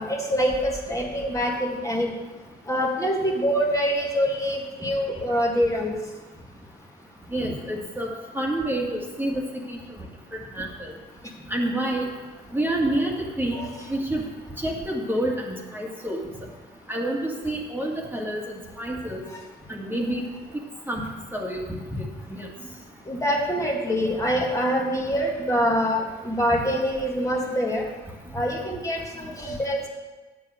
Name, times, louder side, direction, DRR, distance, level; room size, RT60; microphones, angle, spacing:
voice 1, 0.0-2.1 2.7-5.9 13.5-13.7 19.3-19.4 23.1-27.8 28.3-29.9, equal, 15° left, -2 dB, 1.9 m, -25 dB
voice 2, 7.3-8.1 8.3-9.8 10.5-10.9 11.5-12.1 12.5-14.2 14.6-16.2 16.9-19.2 19.7-20.3 20.9-21.0 21.3-21.6 21.9-22.5, right 1 dB, 10° right, -1 dB, 2.0 m, -28 dB
9.3 x 7.8 x 6.4 m, 1.3 s
cardioid pair, 90°, 20 cm